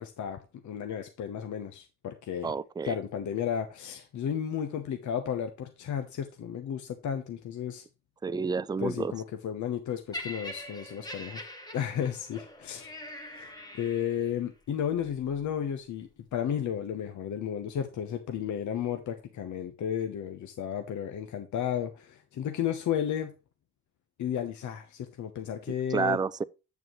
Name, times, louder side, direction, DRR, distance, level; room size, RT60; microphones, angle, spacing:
voice 1, 0.0-2.5 2.8-7.8 8.8-11.4 11.7-12.9 13.3-23.3 24.2-26.2, left 9 dB, 65° left, 1.0 m, -33 dB
voice 2, 2.4-3.0 8.2-9.1 25.9-26.4, right 5 dB, 15° right, 0.4 m, -29 dB
Laughter, 10.1-14.4 15.2-15.4, left 1 dB, 10° left, 1.8 m, -43 dB
8.3 x 6.8 x 3.2 m
cardioid pair, 75°, 31 cm